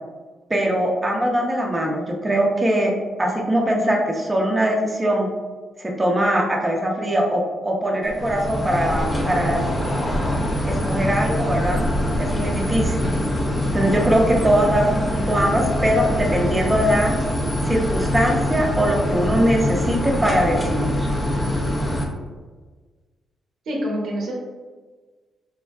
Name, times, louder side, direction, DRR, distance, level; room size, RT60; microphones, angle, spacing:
voice 1, 0.5-2.9 3.2-5.3 5.8-9.6 10.6-11.8 12.2-13.0 13.7-17.2 17.6-21.1, equal, 20° right, -1 dB, 0.6 m, -21 dB
sound 1, 8.0-22.1, left 1 dB, 25° left, 0.5 m, -23 dB
voice 2, 23.7-24.4, equal, 75° right, -3 dB, 0.6 m, -26 dB
3.5 x 2.2 x 2.2 m, 1.4 s
supercardioid pair, 55°, 0 cm